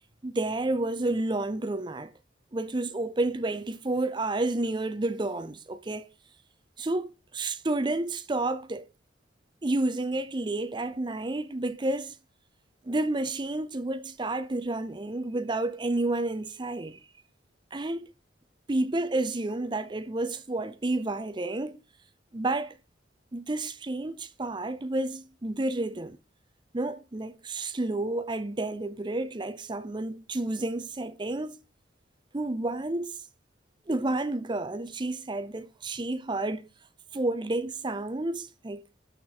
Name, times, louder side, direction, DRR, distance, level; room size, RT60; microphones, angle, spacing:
voice 1, 0.2-2.1 2.5-6.1 6.8-8.9 9.6-12.2 12.9-17.0 17.7-18.1 18.7-21.8 22.3-22.8 23.3-26.2 26.7-31.6 32.3-33.2 33.9-36.7 37.1-38.8, right 2 dB, 25° right, 0.5 m, -30 dB
8.1 x 6.6 x 4.3 m
head